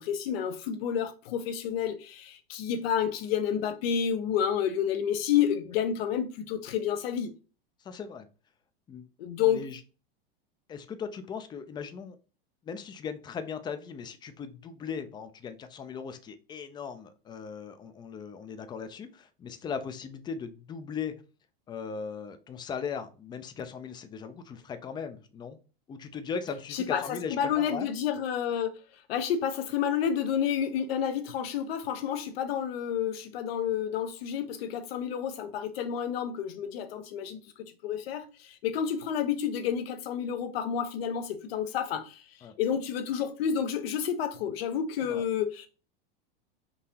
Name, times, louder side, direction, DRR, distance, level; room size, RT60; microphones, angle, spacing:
voice 1, 0.0-7.3 9.2-9.6 26.7-28.8 29.1-42.2 42.6-45.7, left 8 dB, 75° left, 0.7 m, -30 dB
voice 2, 7.8-8.3 8.9-9.1 9.5-9.8 10.7-12.2 12.6-21.2 21.7-25.6 25.9-27.9 42.4-42.5 45.0-45.2, left 6 dB, 15° left, 0.3 m, -38 dB
3.8 x 2.8 x 2.8 m
hypercardioid pair, 115°, 30 cm